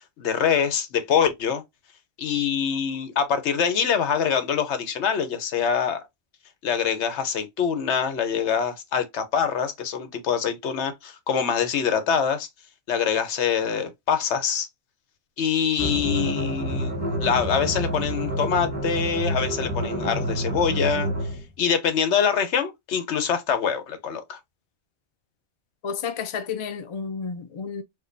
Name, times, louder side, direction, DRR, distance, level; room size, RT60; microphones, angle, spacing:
voice 1, 0.2-1.6 2.2-6.0 6.6-12.5 12.9-14.7 15.4-21.1 21.6-24.4, left 7 dB, 80° left, 1.1 m, -24 dB
sound 1, 15.8-21.4, right 1 dB, 10° right, 0.8 m, -28 dB
voice 2, 25.8-27.8, left 6 dB, 45° left, 0.4 m, -31 dB
4.6 x 2.2 x 2.5 m
omnidirectional pair, 1.2 m